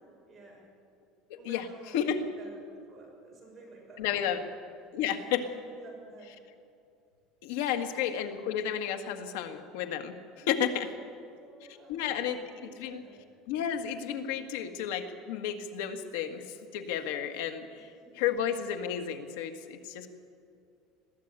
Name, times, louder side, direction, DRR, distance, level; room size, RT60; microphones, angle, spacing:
voice 1, 0.3-0.6 1.4-4.3 5.2-6.3 7.6-8.0 10.3-13.4, right 2 dB, 15° right, -3 dB, 6.4 m, -52 dB
voice 2, 1.9-2.3 4.0-4.4 4.9-5.4 7.4-10.9 11.9-13.0 13.5-16.5 16.7-17.9 18.2-20.1, left 9 dB, 85° left, 6 dB, 1.8 m, -32 dB
21.5 x 14.5 x 8.9 m, 2.4 s
cardioid pair, 160°, 0 cm